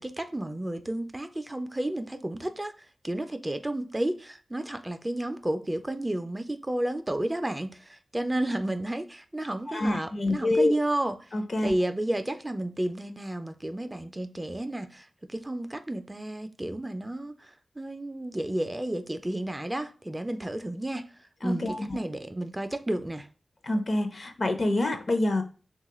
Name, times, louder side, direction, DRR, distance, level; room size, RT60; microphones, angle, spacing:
voice 1, 0.0-11.3 11.6-21.1 21.4-23.3, right 1 dB, 20° right, 0.4 m, -32 dB
voice 2, 9.7-10.8 11.3-11.7 21.4-22.0 23.6-25.4, left 2 dB, 55° left, 0.6 m, -26 dB
3.2 x 2.3 x 2.9 m
cardioid pair, 60°, 0 cm